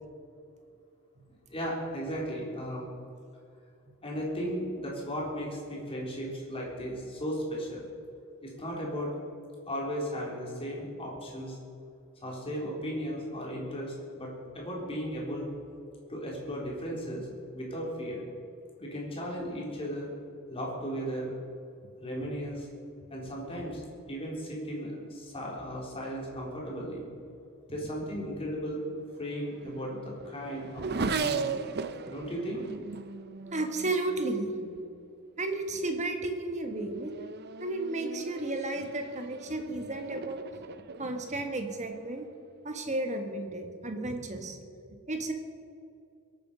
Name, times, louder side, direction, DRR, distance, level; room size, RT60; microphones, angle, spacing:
voice 1, 1.5-2.9 4.0-7.9 8.4-9.1 9.7-11.6 12.2-15.5 16.1-17.3 17.5-18.2 18.8-20.1 20.5-21.4 22.0-22.7 23.1-23.8 24.1-27.0 27.7-28.9 29.2-31.6 32.1-32.7, equal, 25° left, -3 dB, 3.8 m, -36 dB
Race car auto racing / Accelerating revving vroom, 29.1-35.0 35.8-36.2 36.6-42.5, right 5 dB, 50° right, 0.6 m, -38 dB
voice 2, 33.5-34.5 35.4-37.1 37.6-40.4 41.0-42.3 42.6-44.6 45.1-45.3, right 2 dB, 35° right, 5 dB, 1.5 m, -33 dB
23.0 x 9.0 x 5.5 m, 2.4 s
head